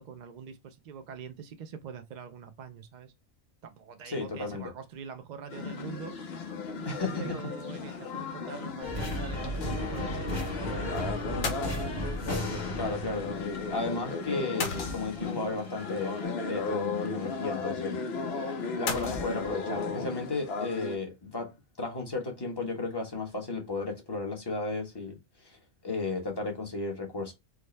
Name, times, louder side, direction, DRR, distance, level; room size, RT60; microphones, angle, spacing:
voice 1, 0.0-3.1 3.6-6.1 7.2-11.9, right 7 dB, 70° right, 0.4 m, -44 dB
voice 2, 4.0-4.7 6.8-7.2 7.9-8.0 12.7-16.2 16.5-18.0 18.3-21.5 21.8-27.3, left 3 dB, 20° left, 1.0 m, -34 dB
sound 1, 5.5-21.0, left 4 dB, 60° left, 0.9 m, -36 dB
sound 2, 8.8-16.2, left 1 dB, 35° left, 1.3 m, -36 dB
sound 3, 9.5-10.1 10.4-10.5 11.4-12.3 14.6-15.5 18.9-19.8, left 4 dB, 85° left, 1.3 m, -36 dB
4.8 x 2.1 x 3.2 m
omnidirectional pair, 1.4 m